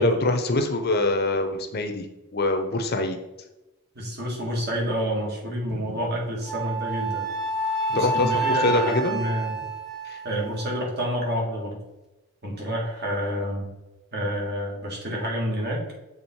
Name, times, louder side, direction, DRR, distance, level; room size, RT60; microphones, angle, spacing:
voice 1, 0.0-2.1 2.3-3.2 7.9-9.2 10.1-10.2, left 2 dB, 45° left, 6 dB, 0.6 m, -24 dB
voice 2, 4.0-7.3 7.9-9.5 10.2-11.8 12.4-13.7 14.1-15.8, equal, 50° right, -2 dB, 1.9 m, -28 dB
Wind instrument woodwind instrument, 6.5-10.8, right 2 dB, ahead, 0.8 m, -29 dB
7.1 x 3.6 x 4.4 m, 1.0 s
head